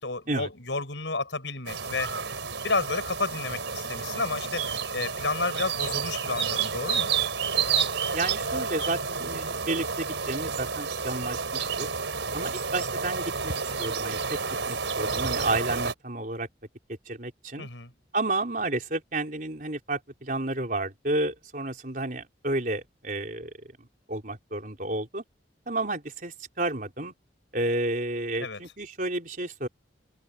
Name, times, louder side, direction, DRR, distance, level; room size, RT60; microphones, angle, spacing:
voice 1, 0.0-2.1 2.6-7.1 17.6-17.9 28.4-28.6, left 3 dB, 80° left, 6.4 m, -31 dB
sound 1, 1.7-15.9, right 5 dB, 90° right, 5.1 m, -30 dB
voice 2, 8.1-11.9 12.3-14.4 14.7-16.5 17.1-17.7 18.1-23.5 23.8-25.2 25.7-27.1 27.5-29.7, right 2 dB, 45° right, 4.3 m, -31 dB
open air
head